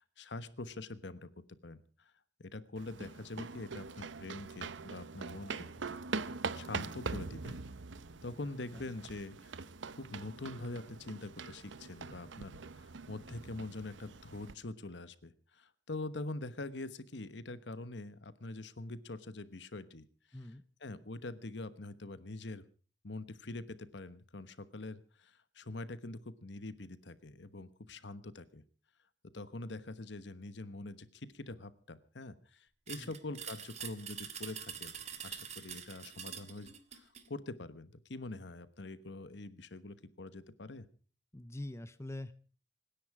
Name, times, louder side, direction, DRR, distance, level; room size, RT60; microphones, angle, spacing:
voice 1, 0.0-2.1 2.4-5.7 6.5-7.6 8.2-9.6 10.0-20.1 20.8-22.6 23.0-28.6 29.3-35.0 35.2-40.9, left 2 dB, 70° left, 14 dB, 1.1 m, -44 dB
sound 1, 2.8-14.5, right 4 dB, 85° right, 0.8 m, -43 dB
sound 2, 32.9-37.3, right 8 dB, 35° right, 1.7 m, -45 dB
voice 2, 41.3-42.3, left 1 dB, 15° left, 12 dB, 0.7 m, -44 dB
26.0 x 10.5 x 4.8 m, 0.39 s
head